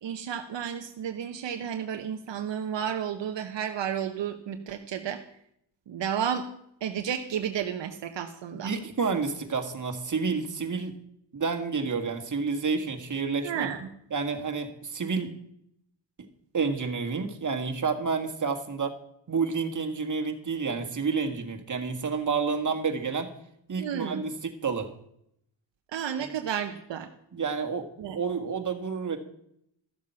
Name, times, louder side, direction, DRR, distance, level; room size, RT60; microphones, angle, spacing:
voice 1, 0.0-5.2 5.9-6.4 6.8-8.7 13.4-13.9 23.8-24.2 25.9-27.1 28.0-28.2, right 8 dB, 75° right, 6 dB, 0.9 m, -32 dB
voice 2, 8.6-10.9 11.3-13.7 14.1-15.3 16.5-19.0 19.3-23.3 23.7-24.9 26.2-26.3 27.3-29.2, right 5 dB, 45° right, 5 dB, 1.8 m, -29 dB
13.5 x 7.4 x 5.8 m, 0.73 s
cardioid pair, 65°, 44 cm